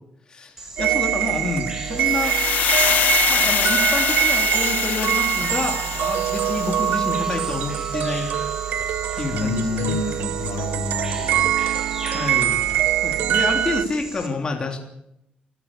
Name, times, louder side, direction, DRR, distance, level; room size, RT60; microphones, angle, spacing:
voice 1, 0.3-2.4 2.9-8.3 9.2-10.0 12.1-12.6 13.0-14.8, left 3 dB, 30° left, 2 dB, 3.3 m, -28 dB
Bird vocalization bird call bird song, 0.6-14.3, right 2 dB, 15° right, 5.5 m, -37 dB
sound 1, 0.8-13.8, right 12 dB, 90° right, 0.8 m, -23 dB
sound 2, 2.0-7.1, left 10 dB, 70° left, 0.9 m, -24 dB
voice 2, 9.3-11.5, left 4 dB, 50° left, 3 dB, 3.5 m, -28 dB
24.0 x 15.0 x 8.6 m, 0.81 s
wide cardioid pair, 160°, 3 cm